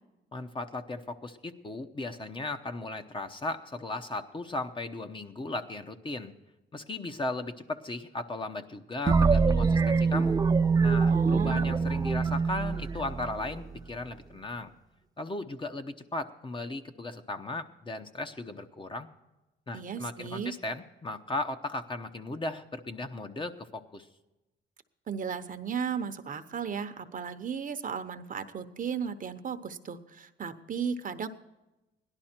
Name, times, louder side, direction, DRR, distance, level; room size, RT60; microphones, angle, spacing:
voice 1, 0.3-6.3 6.7-10.4 10.8-14.7 15.2-19.1 19.7-24.1, left 2 dB, 25° left, 7 dB, 0.9 m, -36 dB
sound 1, 9.1-13.8, right 5 dB, 20° right, 0.7 m, -24 dB
voice 2, 11.1-11.8 19.7-20.5 25.1-31.3, right 7 dB, 45° right, 10 dB, 0.9 m, -35 dB
16.5 x 11.5 x 4.4 m, 1.0 s
cardioid pair, 90°, 20 cm